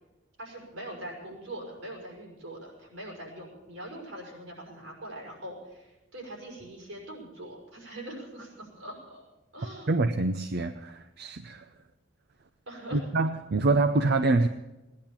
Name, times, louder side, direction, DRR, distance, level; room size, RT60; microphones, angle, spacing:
voice 1, 0.4-9.2 9.5-10.0 12.7-13.1, right 1 dB, 80° right, -1 dB, 6.0 m, -42 dB
voice 2, 9.9-11.6 12.9-14.5, right 3 dB, 55° right, 8 dB, 0.6 m, -25 dB
17.5 x 10.5 x 7.3 m, 1.0 s
head